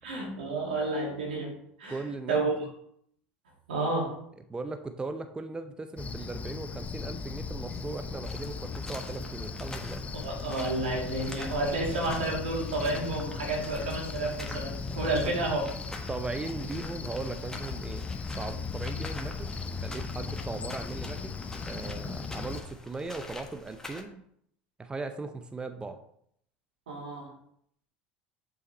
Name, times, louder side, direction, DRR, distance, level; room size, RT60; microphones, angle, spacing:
voice 1, 0.0-1.5 1.8-2.6 3.7-4.1 10.1-15.6 15.9-16.1 26.9-27.3, right 2 dB, 85° right, -2 dB, 2.6 m, -31 dB
voice 2, 1.9-2.5 4.5-10.1 15.0-15.3 16.1-18.1 18.4-21.3 21.7-24.2 24.8-26.0, right 3 dB, 15° right, 8 dB, 0.6 m, -38 dB
Cricket, 6.0-22.6, left 4 dB, 25° left, 0.6 m, -37 dB
sound 1, 8.2-24.0, left 2 dB, 10° left, 1.3 m, -46 dB
6.9 x 4.9 x 4.2 m, 0.69 s
hypercardioid pair, 80°, 5 cm